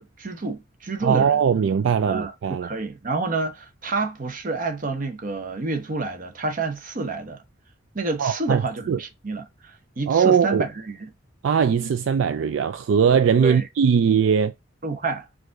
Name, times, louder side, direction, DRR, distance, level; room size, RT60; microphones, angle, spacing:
voice 1, 0.0-1.4 2.0-7.4 7.9-11.1 13.4-13.7 14.8-15.3, right 3 dB, 45° right, 0.8 m, -29 dB
voice 2, 1.0-2.7 8.2-8.6 8.9-9.0 10.1-10.6 11.4-14.5, right 7 dB, 70° right, 0.3 m, -20 dB
4.7 x 2.6 x 3.7 m
head